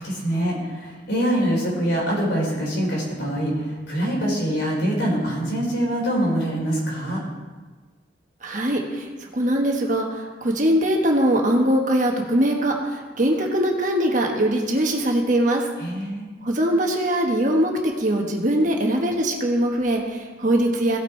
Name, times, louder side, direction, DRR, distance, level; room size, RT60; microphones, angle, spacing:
voice 1, 0.0-7.2 15.8-16.3, equal, 70° left, -4 dB, 3.9 m, -24 dB
voice 2, 8.4-15.7 16.4-21.0, right 1 dB, 45° right, 1 dB, 1.2 m, -22 dB
16.5 x 5.9 x 4.4 m, 1.3 s
head